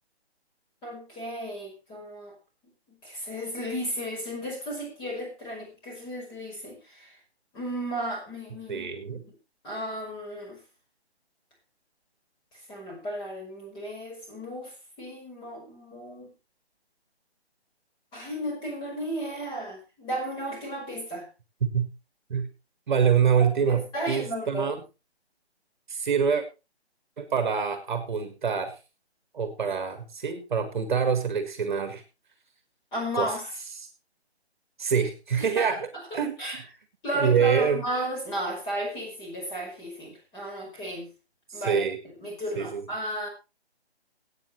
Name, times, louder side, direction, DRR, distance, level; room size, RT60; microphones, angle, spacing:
voice 1, 0.8-2.3 3.0-7.1 7.5-9.2 9.6-10.6 12.7-16.3 18.1-21.2 23.4-24.6 32.9-33.5 35.4-35.7 35.9-36.6 37.0-41.1 41.5-41.8 42.2-43.3, equal, 15° left, -1 dB, 5.2 m, -34 dB
voice 2, 8.7-9.2 21.6-21.9 22.3-22.5 22.9-24.8 25.9-26.4 27.2-28.8 29.3-32.0 33.1-33.3 33.8-33.9 34.8-36.3 37.1-37.8 41.5-42.0 42.6-42.8, right 6 dB, 45° right, 8 dB, 1.9 m, -25 dB
23.0 x 9.2 x 3.2 m, 0.28 s
figure-of-eight pair, 150°, 33 cm